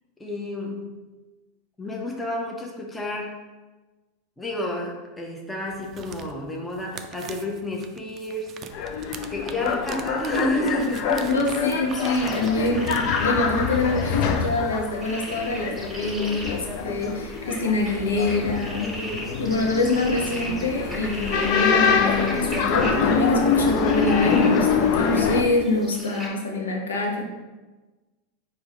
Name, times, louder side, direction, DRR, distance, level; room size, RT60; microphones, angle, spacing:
voice 1, 0.2-0.9 1.8-3.4 4.4-8.5 9.3-11.5 18.8-19.7, left 1 dB, 10° left, -1 dB, 0.8 m, -30 dB
sound 1, 5.7-13.0, right 7 dB, 40° right, 0.4 m, -42 dB
sound 2, 8.7-25.4, left 5 dB, 55° left, 0.5 m, -25 dB
voice 2, 11.2-18.9 19.4-27.2, left 2 dB, 85° left, 1 dB, 0.8 m, -25 dB
sound 3, 11.9-26.3, equal, 5° right, 1.5 m, -39 dB
4.8 x 2.7 x 4.1 m, 1.2 s
hypercardioid pair, 90°, 0 cm